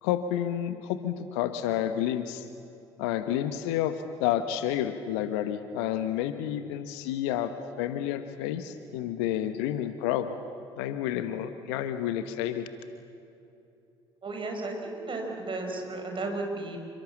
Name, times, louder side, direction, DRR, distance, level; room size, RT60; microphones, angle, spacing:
voice 1, 0.0-2.4 3.0-3.9 4.2-7.5 7.8-10.3 10.8-12.7, left 11 dB, 70° left, 10 dB, 1.2 m, -30 dB
voice 2, 14.2-16.8, right 2 dB, 35° right, 2 dB, 5.8 m, -34 dB
28.5 x 25.0 x 7.3 m, 2.7 s
figure-of-eight pair, 50°, 14 cm